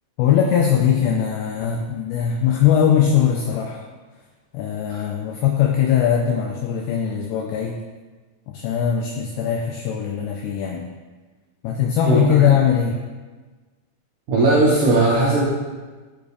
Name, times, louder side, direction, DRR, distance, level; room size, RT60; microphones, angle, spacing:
voice 1, 0.2-3.8 4.5-7.8 8.5-10.9 11.6-13.0, left 9 dB, 85° left, 1 dB, 2.2 m, -20 dB
voice 2, 12.1-12.5 14.3-15.4, right 2 dB, 85° right, -6 dB, 1.8 m, -18 dB
9.8 x 5.3 x 2.4 m, 1.3 s
omnidirectional pair, 4.9 m